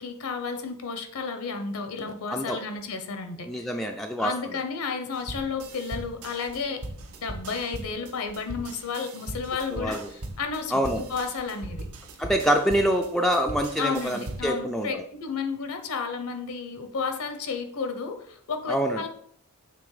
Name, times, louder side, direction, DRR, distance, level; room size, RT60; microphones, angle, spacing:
voice 1, 0.0-3.7 4.2-6.8 7.2-11.9 13.8-19.1, left 5 dB, 75° left, 7 dB, 0.8 m, -32 dB
voice 2, 3.5-4.3 9.7-10.1 10.7-11.0 12.2-14.9 18.7-19.0, equal, ahead, 2 dB, 0.3 m, -25 dB
sound 1, 5.1-14.6, right 1 dB, 80° right, 1.0 m, -39 dB
6.9 x 3.3 x 4.8 m, 0.63 s
head